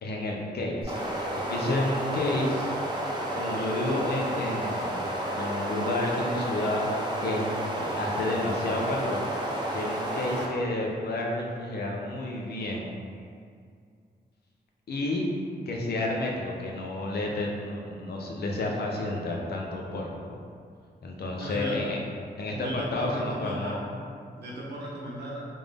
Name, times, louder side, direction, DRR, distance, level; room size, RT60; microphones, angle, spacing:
voice 1, 0.0-2.7 3.3-5.1 5.3-6.8 7.2-9.2 9.7-13.0 14.9-15.3 15.7-20.4 21.0-22.0 22.4-23.8, left 2 dB, 65° left, -1 dB, 0.6 m, -30 dB
sound 1, 0.8-10.5, right 1 dB, 25° right, 0.6 m, -31 dB
voice 2, 21.4-21.8 22.5-23.8 24.4-25.5, right 1 dB, 75° right, -5 dB, 0.9 m, -36 dB
3.6 x 2.5 x 3.3 m, 2.3 s
cardioid pair, 90°, 17 cm